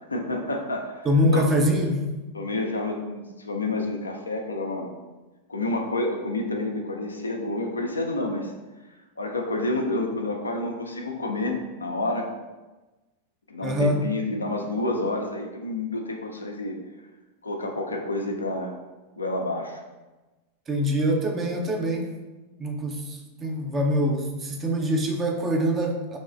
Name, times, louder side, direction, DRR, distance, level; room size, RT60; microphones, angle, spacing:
voice 1, 0.1-1.5 2.3-4.9 5.5-8.5 9.2-12.3 13.5-16.8 17.4-18.8 19.2-19.8, left 2 dB, 75° left, 2 dB, 0.5 m, -29 dB
voice 2, 1.0-2.0 13.6-14.1 20.7-22.1 22.6-26.2, equal, 20° right, 2 dB, 0.6 m, -24 dB
3.5 x 3.1 x 3.8 m, 1.2 s
figure-of-eight pair, 90°, 0 cm